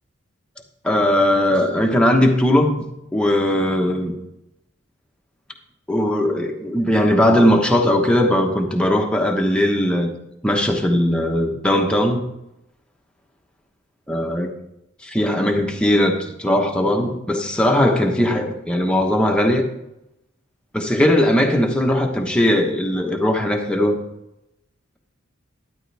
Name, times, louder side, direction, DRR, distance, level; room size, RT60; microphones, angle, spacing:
voice 1, 0.8-2.8 3.1-4.1 5.9-10.1 10.4-12.2 14.1-14.5 15.0-19.6 20.7-24.0, left 1 dB, 5° left, 1 dB, 1.1 m, -19 dB
12.0 x 10.0 x 3.4 m, 0.85 s
head